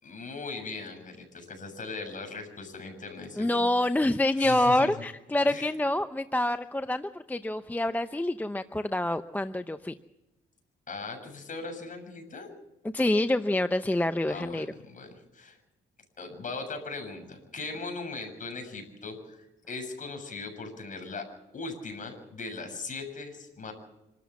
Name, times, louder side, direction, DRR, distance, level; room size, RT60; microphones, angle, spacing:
voice 1, 0.0-3.7 4.4-4.9 5.5-5.7 10.9-12.5 14.3-15.6 16.2-21.3 21.5-23.7, left 3 dB, 40° left, 4 dB, 7.3 m, -39 dB
voice 2, 3.4-9.9 12.9-14.7, left 1 dB, 10° left, 10 dB, 0.7 m, -27 dB
26.5 x 13.5 x 7.3 m, 1.0 s
cardioid pair, 90°, 20 cm